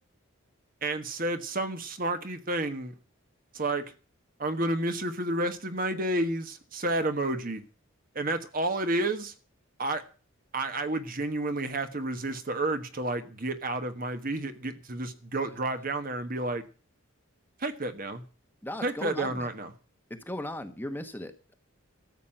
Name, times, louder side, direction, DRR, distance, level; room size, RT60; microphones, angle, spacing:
voice 1, 0.8-2.9 3.5-3.9 4.4-7.6 8.1-9.3 9.8-10.0 10.5-16.6 17.6-18.2 18.8-19.7, right 2 dB, 40° right, 1.3 m, -30 dB
voice 2, 18.6-19.5 20.1-21.5, left 1 dB, 10° left, 1.1 m, -37 dB
13.5 x 7.5 x 8.8 m
head